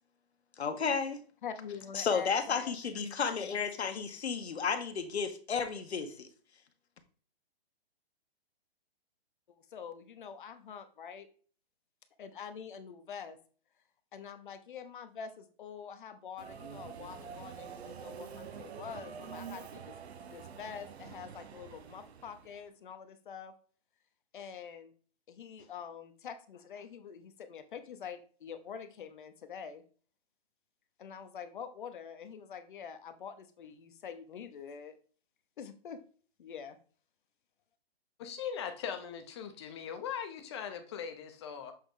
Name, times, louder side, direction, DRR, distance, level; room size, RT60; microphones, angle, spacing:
voice 1, 0.6-1.2 1.9-6.3, left 6 dB, 90° left, 1.2 m, -33 dB
voice 2, 1.4-2.7 9.5-11.3 12.2-13.4 14.1-19.9 20.3-23.5 24.3-24.9 25.3-29.8 31.0-35.0 35.6-36.0 36.4-36.8, left 7 dB, 50° left, 0.9 m, -45 dB
Subway metro underground, 16.4-22.6, right 7 dB, 80° right, 0.8 m, -47 dB
voice 3, 38.2-41.7, left 7 dB, 25° left, 0.7 m, -40 dB
7.3 x 3.8 x 3.7 m
hypercardioid pair, 160°, 31 cm